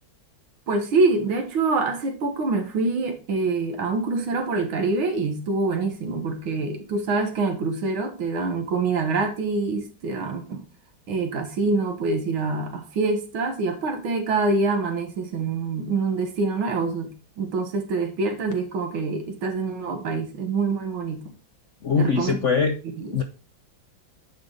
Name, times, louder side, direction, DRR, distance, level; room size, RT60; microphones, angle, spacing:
voice 1, 0.7-10.6 11.1-21.3 22.0-22.4 23.0-23.1, right 3 dB, 85° right, 2.2 m, -25 dB
voice 2, 21.8-22.8 23.1-23.2, left 5 dB, 65° left, 0.7 m, -22 dB
9.7 x 4.0 x 5.0 m
omnidirectional pair, 2.2 m